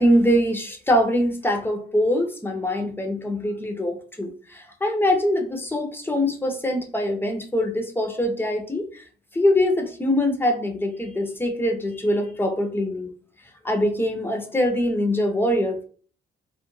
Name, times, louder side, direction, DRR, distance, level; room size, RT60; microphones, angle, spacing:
voice 1, 0.0-9.0 9.3-13.1 13.6-15.9, left 1 dB, 10° left, 3 dB, 0.6 m, -23 dB
2.3 x 2.1 x 3.0 m, 0.43 s
cardioid pair, 90°, 20 cm